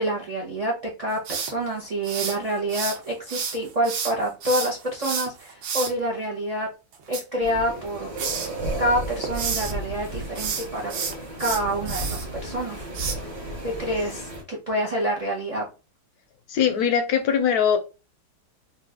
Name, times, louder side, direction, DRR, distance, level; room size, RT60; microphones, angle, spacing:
voice 1, 0.0-6.7 7.1-8.1 8.8-10.9 11.4-12.8 13.6-15.6, right 1 dB, 55° right, -1 dB, 0.4 m, -27 dB
sound 1, 1.2-3.0 3.3-5.9 6.9-7.9 8.2-8.5 8.9-9.7 10.3-12.2 12.9-13.1, right 6 dB, 75° right, 1.4 m, -30 dB
sound 2, 7.4-14.4, right 1 dB, 30° right, 0.7 m, -34 dB
voice 2, 16.5-17.8, left 8 dB, 70° left, 7 dB, 0.9 m, -21 dB
3.2 x 2.5 x 3.4 m, 0.30 s
omnidirectional pair, 2.0 m